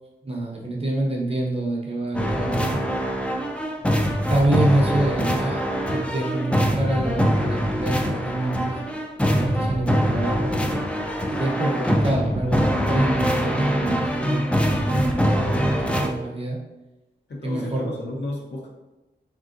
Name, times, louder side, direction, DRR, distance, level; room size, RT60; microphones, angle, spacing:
voice 1, 0.2-2.7 4.3-8.8 9.3-10.8 11.3-14.4 14.8-16.6 17.4-18.2, right 1 dB, 35° right, -1 dB, 0.7 m, -26 dB
sound 1, 2.1-16.1, equal, 5° left, 0.3 m, -23 dB
voice 2, 15.1-15.4 17.3-18.7, left 1 dB, 75° left, -2 dB, 0.7 m, -33 dB
3.5 x 2.6 x 2.5 m, 1.0 s
wide cardioid pair, 95°, 18 cm